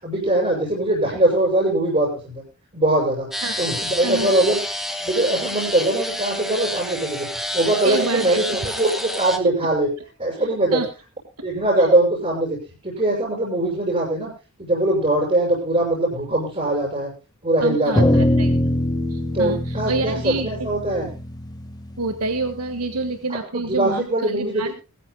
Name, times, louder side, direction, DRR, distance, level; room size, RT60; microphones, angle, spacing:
voice 1, 0.0-2.4 2.7-3.3 3.6-4.6 5.0-7.3 7.5-9.9 10.2-10.8 11.4-12.6 12.8-14.3 14.6-17.1 17.4-18.2 19.3-21.1 23.5-24.7, right 1 dB, 30° right, -3 dB, 6.7 m, -21 dB
sound 1, 3.3-9.4, equal, ahead, 1.8 m, -29 dB
voice 2, 4.0-4.3 7.8-8.4 10.4-10.9 11.8-11.9 17.6-18.5 19.1-20.7 22.0-24.7, right 3 dB, 90° right, 8 dB, 1.6 m, -27 dB
sound 2, 17.9-22.5, left 1 dB, 15° left, 1.5 m, -22 dB
20.5 x 14.5 x 2.2 m, 0.31 s
head